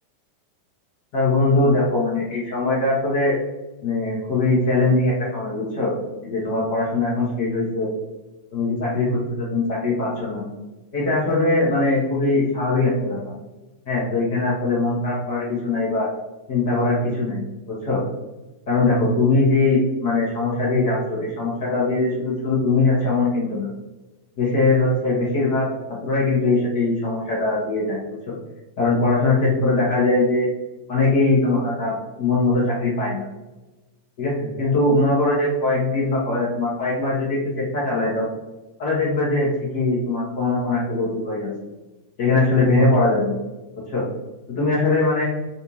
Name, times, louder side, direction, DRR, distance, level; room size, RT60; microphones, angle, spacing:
voice 1, 1.1-3.4 3.8-5.9 6.2-7.9 8.5-10.4 10.9-13.3 13.9-16.1 16.5-18.0 18.7-23.7 24.4-28.0 28.8-30.5 30.9-33.2 34.2-38.2 38.8-39.5 39.7-41.5 42.2-43.3 43.9-44.0 44.6-45.2, left 2 dB, 50° left, -6 dB, 0.9 m, -21 dB
3.4 x 2.6 x 2.9 m, 1.1 s
figure-of-eight pair, 90°, 0 cm